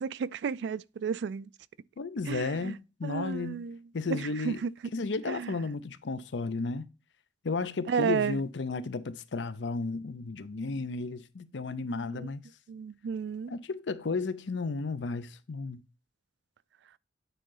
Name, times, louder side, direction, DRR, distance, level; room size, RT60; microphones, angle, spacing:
voice 1, 0.0-1.5 2.3-2.7 3.0-3.8 4.1-4.7 5.3-5.5 7.9-8.4 12.1-12.3 12.7-13.5, right 6 dB, 65° right, 0.3 m, -32 dB
voice 2, 2.0-3.6 3.9-4.6 4.9-6.8 7.4-12.4 13.5-15.8, left 3 dB, 75° left, 0.6 m, -33 dB
9.0 x 3.8 x 3.9 m
head